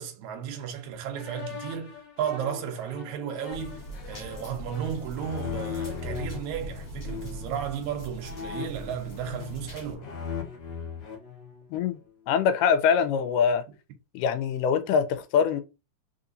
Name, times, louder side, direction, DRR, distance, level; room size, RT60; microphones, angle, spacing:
voice 1, 0.0-10.1, right 8 dB, 75° right, 2.1 m, -34 dB
sound 1, 1.1-6.4 7.0-7.5 8.2-9.7 10.0-11.9, left 6 dB, 70° left, 1.0 m, -38 dB
sound 2, 3.5-9.9, equal, 40° left, 1.0 m, -42 dB
voice 2, 12.3-13.6 14.1-15.6, left 7 dB, 85° left, 2.2 m, -23 dB
4.4 x 3.9 x 2.6 m
omnidirectional pair, 3.7 m